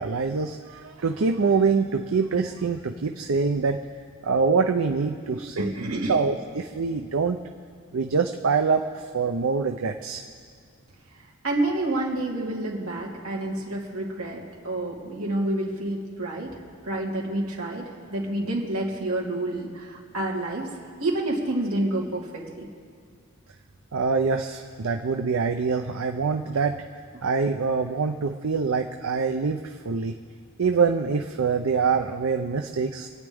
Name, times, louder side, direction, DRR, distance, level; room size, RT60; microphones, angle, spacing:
voice 1, 0.0-3.8 4.2-5.7 6.1-7.4 7.9-10.2 23.9-26.8 27.2-30.1 30.6-33.1, right 5 dB, 75° right, 5 dB, 0.6 m, -25 dB
voice 2, 5.6-6.2 11.2-20.7 21.0-22.7, right 1 dB, 90° right, -3 dB, 2.8 m, -29 dB
28.0 x 9.6 x 3.5 m, 2.2 s
head